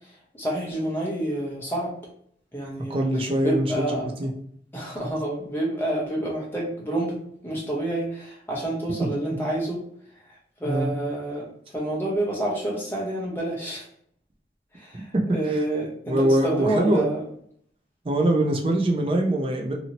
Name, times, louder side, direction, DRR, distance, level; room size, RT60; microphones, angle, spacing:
voice 1, 0.3-1.9 2.5-3.1 3.4-4.1 4.7-9.8 10.6-13.8 14.7-17.2, right 1 dB, 10° left, -3 dB, 0.8 m, -28 dB
voice 2, 2.9-4.3 9.0-9.1 10.6-10.9 15.1-15.6 16.1-17.1 18.0-19.7, right 1 dB, 30° right, 1 dB, 0.5 m, -23 dB
2.8 x 2.7 x 2.9 m, 0.63 s
head